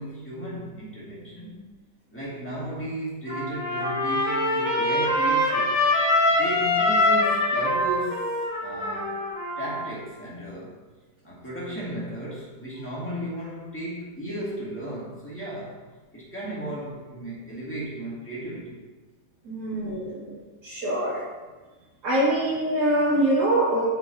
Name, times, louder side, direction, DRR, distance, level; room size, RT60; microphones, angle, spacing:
voice 1, 0.0-1.7 2.1-5.7 6.4-8.2 8.6-9.2 9.6-10.8 11.2-15.8 16.1-18.8, right 1 dB, 5° left, -8 dB, 2.1 m, -35 dB
Trumpet, 3.3-9.9, left 1 dB, 25° left, 2.6 m, -24 dB
voice 2, 19.4-21.2 22.0-23.9, right 1 dB, 70° right, -6 dB, 2.6 m, -24 dB
8.4 x 5.6 x 2.8 m, 1.3 s
omnidirectional pair, 1.8 m